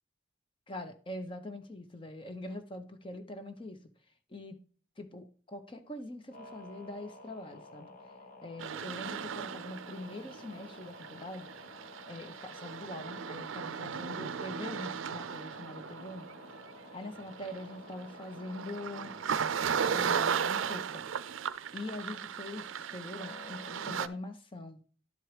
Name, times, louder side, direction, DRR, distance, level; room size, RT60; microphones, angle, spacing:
voice 1, 0.7-3.8 4.3-4.6 5.0-7.9 8.4-11.5 12.1-16.3 16.9-19.1 19.9-21.0 21.7-24.8, left 1 dB, 25° left, 7 dB, 0.8 m, -43 dB
sound 1, 6.3-19.3 23.1-23.9, left 2 dB, 45° left, 1.2 m, -52 dB
sound 2, 8.6-24.1, right 7 dB, 90° right, 0.4 m, -36 dB
11.5 x 4.6 x 3.2 m, 0.43 s
head